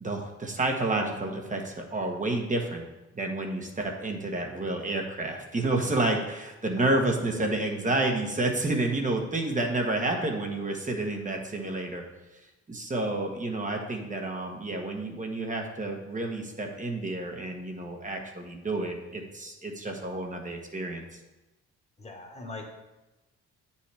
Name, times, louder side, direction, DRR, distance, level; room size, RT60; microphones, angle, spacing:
voice 1, 0.0-2.8 3.1-12.0 12.7-21.0, right 2 dB, 25° right, 2 dB, 1.2 m, -30 dB
voice 2, 6.7-7.4 22.0-22.7, left 2 dB, 20° left, 1 dB, 1.5 m, -42 dB
8.8 x 5.6 x 3.4 m, 1.0 s
cardioid pair, 90°, 30 cm